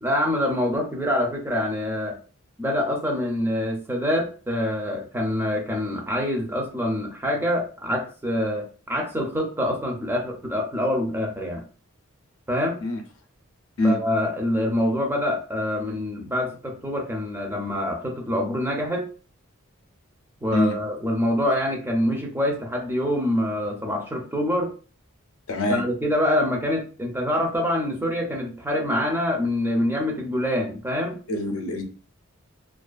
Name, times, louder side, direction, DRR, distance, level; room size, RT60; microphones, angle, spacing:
voice 1, 0.0-2.2 2.6-11.6 12.5-12.8 13.8-19.1 20.4-24.7 25.7-31.2, left 1 dB, 10° right, 1 dB, 0.4 m, -25 dB
voice 2, 25.5-25.8 31.3-31.8, left 1 dB, 85° left, 5 dB, 0.5 m, -23 dB
2.4 x 2.4 x 2.3 m, 0.38 s
head